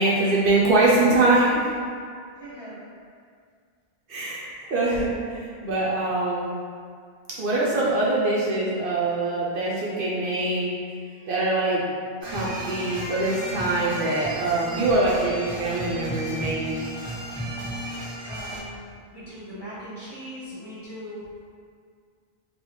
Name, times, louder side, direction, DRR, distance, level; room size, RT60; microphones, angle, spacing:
voice 1, 0.0-1.6 4.1-6.5 7.4-10.7 11.3-11.8 12.2-16.7, right 2 dB, 65° right, -6 dB, 0.7 m, -23 dB
voice 2, 2.4-2.8 18.3-18.8 19.1-21.3, equal, 25° left, -12 dB, 1.1 m, -39 dB
sound 1, 12.2-18.6, right 1 dB, 10° right, 1.4 m, -34 dB
3.4 x 2.2 x 3.0 m, 2.1 s
omnidirectional pair, 1.0 m